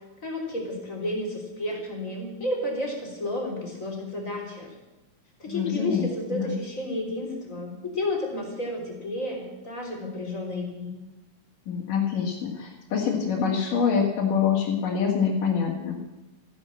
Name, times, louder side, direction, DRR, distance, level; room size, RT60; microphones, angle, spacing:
voice 1, 0.2-4.7 5.4-10.9, left 1 dB, 25° left, 0 dB, 3.7 m, -31 dB
voice 2, 5.5-6.6 11.7-16.0, left 6 dB, 80° left, -4 dB, 3.6 m, -25 dB
15.5 x 10.5 x 7.5 m, 1.0 s
omnidirectional pair, 3.7 m